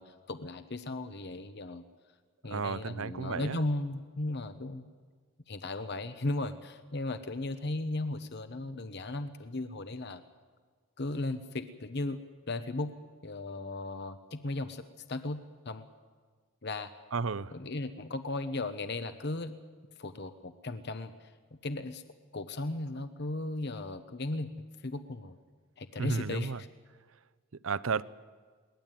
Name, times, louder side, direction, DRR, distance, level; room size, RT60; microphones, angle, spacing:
voice 1, 0.0-1.8 2.4-4.8 5.5-10.2 11.0-12.9 13.2-15.4 15.6-15.9 16.6-16.9 17.5-19.6 20.0-21.3 21.6-22.0 22.3-25.4 25.8-26.5, left 2 dB, 50° left, 1.0 m, -36 dB
voice 2, 2.4-3.6 17.1-17.6 26.0-26.6 27.6-28.0, right 5 dB, 70° right, 0.7 m, -33 dB
22.0 x 19.0 x 9.1 m
head